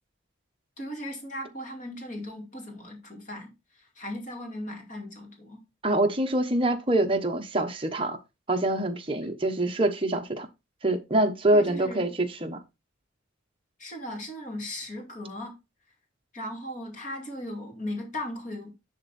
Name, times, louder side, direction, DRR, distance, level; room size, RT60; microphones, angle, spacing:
voice 1, 0.8-5.6 11.5-12.1 13.8-15.6 16.3-18.7, left 1 dB, 40° left, 2.5 m, -37 dB
voice 2, 5.8-8.2 8.5-10.5 10.8-12.6, right 1 dB, 25° right, 1.1 m, -25 dB
10.5 x 3.7 x 4.2 m
head